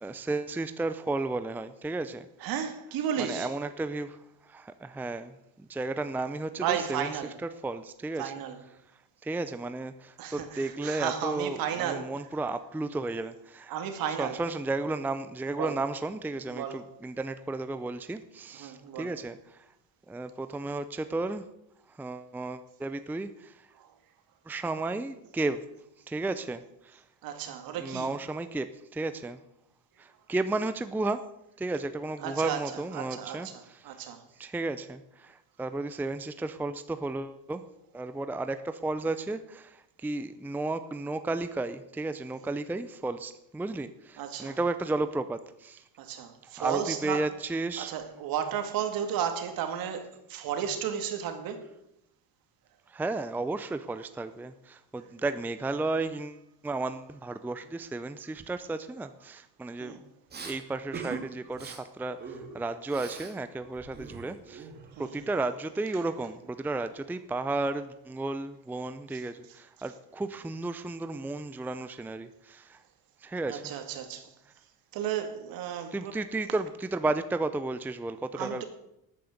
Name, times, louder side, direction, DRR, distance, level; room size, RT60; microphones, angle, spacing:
voice 1, 0.0-2.5 3.2-7.1 7.6-8.3 9.2-13.7 14.2-19.7 20.1-21.4 21.9-23.7 24.5-25.6 26.1-27.0 27.8-29.4 30.0-31.2 31.6-34.0 34.4-37.6 37.9-45.8 46.4-47.9 52.9-60.0 60.4-64.7 65.0-72.8 73.2-73.7 75.9-78.6, right 2 dB, 5° right, 0.5 m, -33 dB
voice 2, 2.4-3.5 6.6-7.3 8.2-8.6 10.2-12.1 13.7-14.4 15.5-15.7 16.5-16.8 18.5-19.1 23.8-23.9 27.2-28.1 32.2-34.2 44.2-44.6 46.0-47.3 47.8-51.6 59.8-60.0 64.9-65.1 69.1-69.2 73.5-74.3 74.9-76.1 78.3-78.6, right 8 dB, 65° right, 2.4 m, -33 dB
Respiratory sounds, 60.3-60.6 60.9-61.2 61.5-61.8 62.2-63.3 63.6-65.0, right 5 dB, 25° right, 2.6 m, -41 dB
13.0 x 9.1 x 7.9 m
cardioid pair, 135°, 38 cm